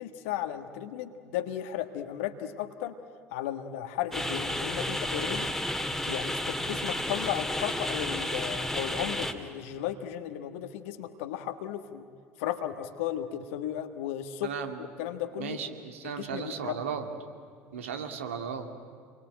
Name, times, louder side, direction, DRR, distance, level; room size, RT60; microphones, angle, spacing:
voice 1, 0.0-2.9 3.3-5.5 6.0-12.0 12.4-14.5 14.8-15.6 16.0-16.8, left 11 dB, 70° left, 7 dB, 1.5 m, -35 dB
sound 1, 4.1-9.3, left 1 dB, 5° left, 2.2 m, -32 dB
voice 2, 14.4-14.8 15.4-17.1 17.7-18.7, right 6 dB, 75° right, 5 dB, 2.3 m, -35 dB
28.0 x 23.0 x 9.1 m, 2.1 s
figure-of-eight pair, 65°, 7 cm